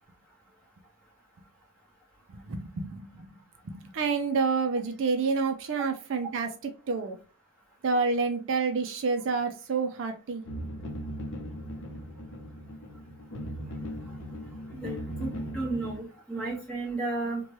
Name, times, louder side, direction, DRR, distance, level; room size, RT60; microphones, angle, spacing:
voice 1, 2.3-3.3 3.7-6.5 6.9-7.2 7.8-10.4, right 4 dB, 60° right, 7 dB, 0.4 m, -28 dB
sound 1, 10.4-16.0, equal, 55° left, 0.6 m, -38 dB
voice 2, 14.7-17.4, right 3 dB, 5° left, -5 dB, 1.2 m, -33 dB
3.0 x 2.2 x 2.8 m, 0.35 s
head